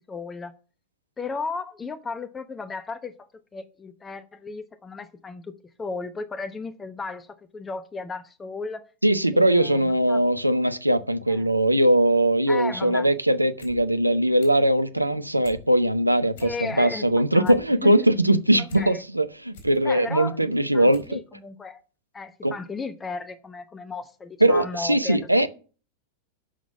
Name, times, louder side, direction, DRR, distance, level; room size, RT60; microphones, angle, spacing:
voice 1, 0.1-0.5 1.2-3.1 3.5-5.5 5.8-8.9 9.3-10.2 11.3-11.5 12.5-13.1 16.4-17.1 17.3-18.1 18.6-19.0 19.8-21.8 22.1-25.2, left 4 dB, 15° left, 0.9 m, -35 dB
voice 2, 9.0-21.2 22.4-22.5 24.4-25.5, right 1 dB, 85° right, 0.8 m, -21 dB
sound 1, 13.6-13.8 14.1-14.7 15.1-15.6 16.0-16.1 16.3-16.9 17.2-18.8 19.2-19.8 20.3-20.4 20.9-21.2 21.4-21.5, left 2 dB, 55° left, 4.0 m, -46 dB
11.0 x 6.2 x 6.9 m
figure-of-eight pair, 90°, 0 cm